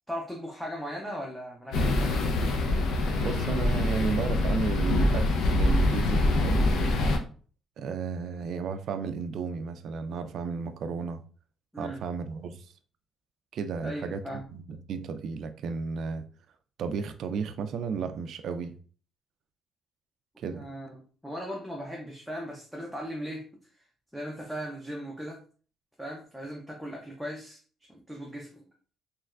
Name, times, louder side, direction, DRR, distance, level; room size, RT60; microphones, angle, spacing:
voice 1, 0.1-2.3 11.7-12.0 13.8-14.5 20.5-23.4 23.7-23.8 24.1-25.4 26.0-27.6 27.9-28.7, equal, ahead, 0.5 m, -38 dB
sound 1, 1.7-7.2, left 2 dB, 75° left, 0.6 m, -25 dB
voice 2, 3.2-6.8 7.8-11.2 11.8-12.7 13.5-16.2 16.8-18.8 20.4-20.7, right 5 dB, 60° right, 0.3 m, -33 dB
3.3 x 3.0 x 2.4 m
cardioid pair, 140°, 0 cm